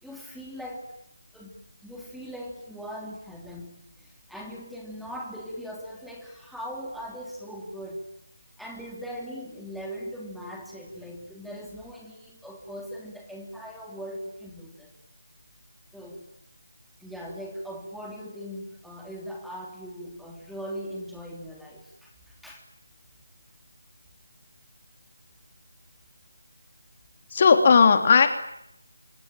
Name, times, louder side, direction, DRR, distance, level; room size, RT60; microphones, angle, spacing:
voice 1, 0.0-1.0 1.3-1.6 1.8-8.0 8.6-14.9 15.9-16.2 17.0-22.6, equal, ahead, -2 dB, 3.0 m, -40 dB
voice 2, 27.3-28.3, left 5 dB, 35° left, 7 dB, 2.8 m, -16 dB
26.0 x 23.5 x 8.9 m, 0.79 s
figure-of-eight pair, 165°, 0 cm